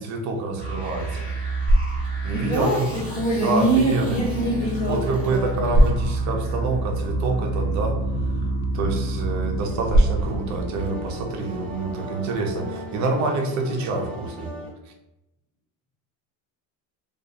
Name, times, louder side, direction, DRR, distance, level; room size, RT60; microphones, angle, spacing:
voice 1, 0.0-1.3 2.2-3.0 3.3-4.2 4.9-8.0 8.4-14.5, right 3 dB, 45° right, 3 dB, 0.6 m, -27 dB
sound 1, 0.6-12.9, right 2 dB, 15° right, 1.0 m, -29 dB
sound 2, 1.3-12.3, right 1 dB, 75° left, 0.8 m, -27 dB
voice 2, 2.3-5.6, right 1 dB, 45° left, -7 dB, 1.2 m, -24 dB
sound 3, 9.6-14.7, left 2 dB, 5° left, 0.6 m, -37 dB
2.4 x 2.1 x 2.7 m, 0.88 s
cardioid pair, 120°, 40 cm